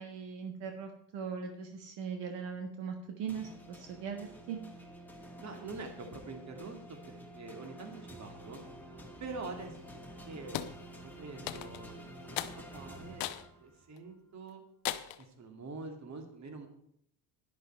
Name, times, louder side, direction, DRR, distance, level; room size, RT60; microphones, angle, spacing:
voice 1, 0.0-4.6, right 6 dB, 65° right, 4 dB, 1.6 m, -40 dB
sound 1, 3.3-13.9, equal, 5° left, 1.9 m, -50 dB
voice 2, 5.4-8.6 9.2-13.2 13.6-14.6 15.2-16.7, right 3 dB, 35° right, 4 dB, 2.2 m, -45 dB
sound 2, 10.5-10.8 11.5-11.9 12.4-12.6 13.2-13.5 14.0-14.1 14.8-15.2, left 14 dB, 75° left, 0.9 m, -36 dB
11.0 x 10.5 x 4.5 m, 0.71 s
cardioid pair, 120°, 46 cm